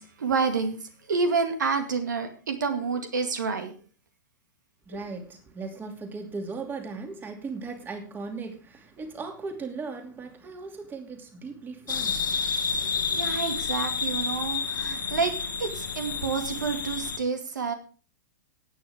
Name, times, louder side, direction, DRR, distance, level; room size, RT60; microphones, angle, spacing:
voice 1, 0.0-3.7 4.9-5.0 13.1-17.7, right 5 dB, 70° right, 2.1 m, -29 dB
voice 2, 4.9-12.3 13.0-13.2, right 4 dB, 20° right, 2.7 m, -38 dB
sound 1, 11.9-17.2, left 5 dB, 75° left, 1.9 m, -30 dB
18.0 x 9.3 x 3.6 m
figure-of-eight pair, 100°, 10 cm